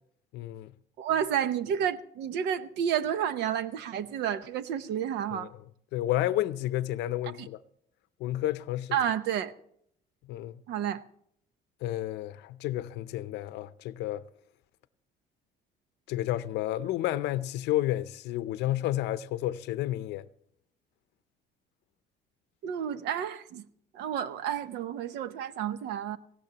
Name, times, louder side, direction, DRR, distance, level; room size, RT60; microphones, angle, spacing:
voice 1, 0.3-0.7 5.3-5.5 5.9-7.6 8.2-9.0 10.3-10.6 11.8-14.2 16.1-20.3, left 14 dB, 80° left, 0.6 m, -31 dB
voice 2, 1.0-5.5 7.4-7.5 8.9-9.5 10.7-11.0 22.6-23.6 23.9-26.2, right 9 dB, 80° right, 0.9 m, -30 dB
19.0 x 16.0 x 2.9 m
cardioid pair, 160°, 17 cm